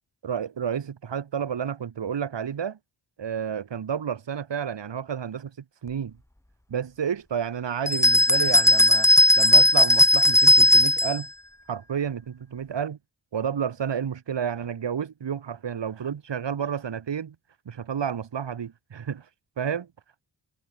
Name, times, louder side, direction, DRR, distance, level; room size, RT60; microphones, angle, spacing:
voice 1, 0.2-2.8 3.2-6.2 6.7-9.1 9.4-11.3 11.7-13.0 13.3-17.4 17.7-19.3 19.6-19.9, right 7 dB, 75° right, 4.2 m, -30 dB
sound 1, 7.9-11.2, left 1 dB, 5° left, 2.3 m, -17 dB
wide cardioid pair, 145°, 43 cm